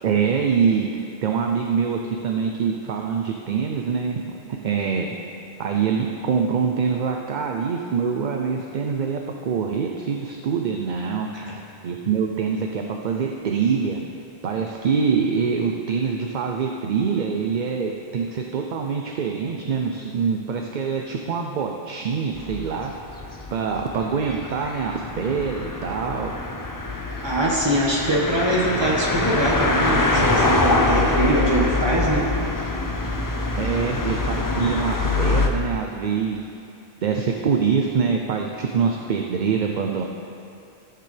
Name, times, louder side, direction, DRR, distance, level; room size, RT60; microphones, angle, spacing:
voice 1, 0.0-4.2 4.6-5.1 5.6-11.3 11.8-14.0 14.4-22.9 23.5-26.3 33.6-36.4 37.0-40.0, right 6 dB, 55° right, 2 dB, 0.6 m, -24 dB
sound 1, 22.3-35.5, left 3 dB, 25° left, 0.5 m, -24 dB
voice 2, 27.2-32.3, right 1 dB, 25° right, -4 dB, 1.6 m, -23 dB
15.0 x 6.8 x 3.3 m, 2.6 s
omnidirectional pair, 1.1 m